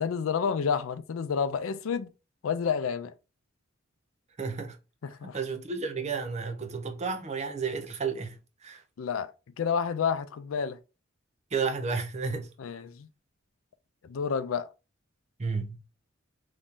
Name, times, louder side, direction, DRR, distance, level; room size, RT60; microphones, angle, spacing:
voice 1, 0.0-2.1 2.4-3.1 5.0-5.4 9.0-9.3 9.6-10.8 12.6-13.1 14.0-14.7, left 6 dB, 85° left, 0.4 m, -29 dB
voice 2, 4.4-4.8 5.2-8.8 11.5-12.5 15.4-15.8, right 5 dB, 35° right, 0.6 m, -32 dB
3.1 x 2.7 x 3.5 m
head